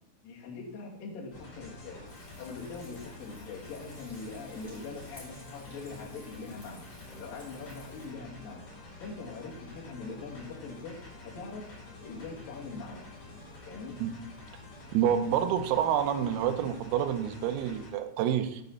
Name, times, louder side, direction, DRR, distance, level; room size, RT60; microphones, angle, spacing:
voice 1, 0.2-2.0 2.4-6.8 7.2-8.6 9.0-11.0 11.2-11.7 12.0-13.0 13.7-14.0, left 4 dB, 55° left, -3 dB, 3.0 m, -42 dB
sound 1, 1.3-17.9, left 2 dB, 35° left, 4.2 m, -48 dB
Frying (food), 2.0-8.1, left 1 dB, 10° left, 2.7 m, -54 dB
voice 2, 14.9-18.6, right 9 dB, 85° right, 9 dB, 3.5 m, -28 dB
9.1 x 5.0 x 6.6 m, 0.78 s
omnidirectional pair, 6.0 m